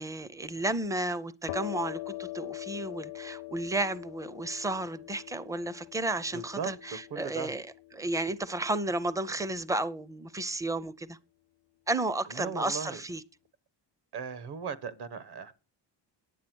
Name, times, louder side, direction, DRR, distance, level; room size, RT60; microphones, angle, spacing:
voice 1, 0.0-7.7 7.9-11.2 11.9-13.2, right 2 dB, 10° right, 0.5 m, -32 dB
sound 1, 1.5-8.9, left 19 dB, 80° left, 0.8 m, -43 dB
voice 2, 6.3-6.7 7.1-7.5 12.3-13.0 14.1-15.5, right 6 dB, 65° right, 1.2 m, -37 dB
9.9 x 8.4 x 6.1 m
cardioid pair, 155°, 43 cm